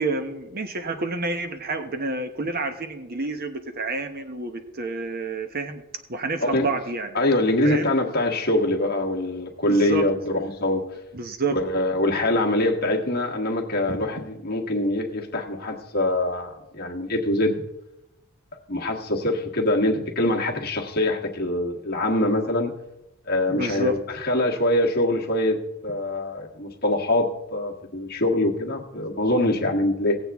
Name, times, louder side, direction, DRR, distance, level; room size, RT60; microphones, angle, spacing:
voice 1, 0.0-5.8 6.1-7.1 7.6-7.9 9.7-10.1 11.1-11.6 13.9-14.0 23.5-24.0, right 2 dB, 40° right, 8 dB, 1.0 m, -29 dB
voice 2, 7.1-10.9 11.5-17.6 18.7-22.7 23.3-25.6 25.8-30.2, left 1 dB, 45° left, 1 dB, 1.4 m, -24 dB
18.0 x 7.8 x 3.5 m, 0.93 s
head